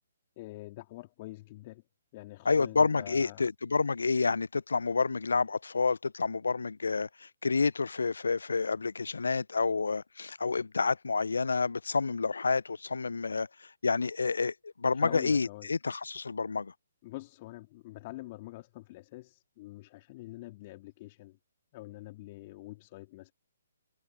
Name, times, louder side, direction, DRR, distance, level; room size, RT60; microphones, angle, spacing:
voice 1, 0.4-1.8 2.1-3.5 14.9-15.7 17.0-21.4 21.7-23.3, left 19 dB, 35° left, 2.8 m, -45 dB
voice 2, 2.5-16.7, left 4 dB, 70° left, 0.5 m, -29 dB
figure-of-eight pair, 130°, 0 cm